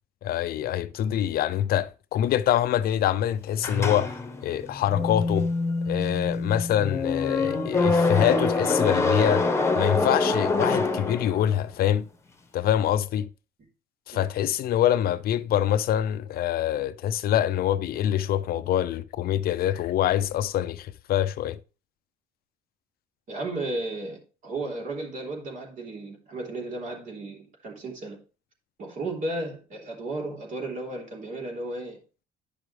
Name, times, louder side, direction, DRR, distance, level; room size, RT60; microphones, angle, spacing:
voice 1, 0.2-4.1 4.4-5.5 5.9-9.5 9.8-12.1 12.5-13.3 14.1-21.6, left 11 dB, 65° left, 0.6 m, -25 dB
sound 1, 3.6-11.7, left 3 dB, 15° left, 1.2 m, -25 dB
voice 2, 23.3-28.2 28.8-32.0, right 2 dB, 50° right, 3.4 m, -34 dB
10.5 x 6.2 x 3.3 m
cardioid pair, 110°, 17 cm